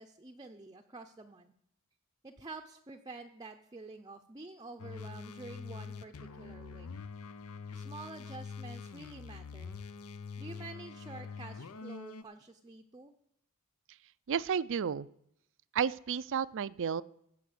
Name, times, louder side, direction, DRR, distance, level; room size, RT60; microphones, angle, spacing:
voice 1, 0.0-1.5 2.2-6.9 7.7-9.8 10.4-13.1, right 3 dB, 20° right, 4 dB, 0.6 m, -48 dB
sound 1, 4.8-12.2, left 5 dB, 75° left, 0.7 m, -45 dB
voice 2, 14.3-15.1 15.7-17.0, right 7 dB, 60° right, 18 dB, 0.4 m, -32 dB
16.5 x 5.8 x 7.8 m, 0.73 s
head